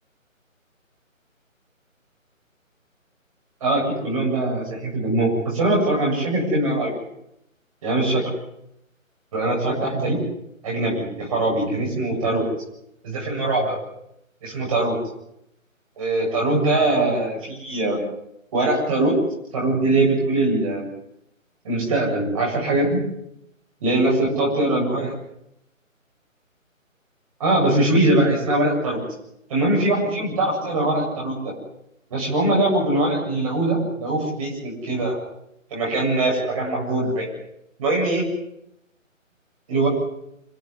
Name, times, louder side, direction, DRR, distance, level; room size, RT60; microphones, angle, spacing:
voice 1, 3.6-6.9 7.8-8.2 9.3-10.2 10.6-12.4 13.0-13.8 14.4-15.0 16.0-18.0 18.5-19.1 19.5-20.9 21.6-23.0 23.8-25.1 27.4-29.0 29.5-31.5 32.1-35.2 35.7-37.3 37.8-38.2 39.7-39.9, right 2 dB, 25° right, -3 dB, 7.9 m, -22 dB
26.5 x 17.0 x 9.8 m, 0.78 s
figure-of-eight pair, 150°, 41 cm